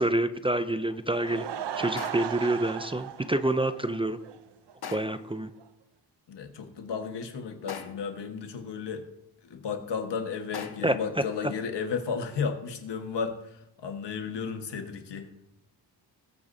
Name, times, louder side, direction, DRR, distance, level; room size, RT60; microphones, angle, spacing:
voice 1, 0.0-1.5 1.8-4.2 4.9-5.5 10.8-11.2, right 1 dB, 15° right, 11 dB, 0.4 m, -27 dB
Laughter / Crowd, 0.9-4.4 4.7-4.8 5.3-5.4 5.6-5.7, right 9 dB, 80° right, 0.7 m, -37 dB
sound 1, 2.0-2.5 4.8-5.3 7.7-8.2 10.5-11.0, left 7 dB, 65° left, 1.1 m, -41 dB
voice 2, 6.3-9.0 9.4-15.3, left 6 dB, 90° left, 6 dB, 1.4 m, -33 dB
20.5 x 8.4 x 2.7 m, 0.83 s
wide cardioid pair, 125°, 41 cm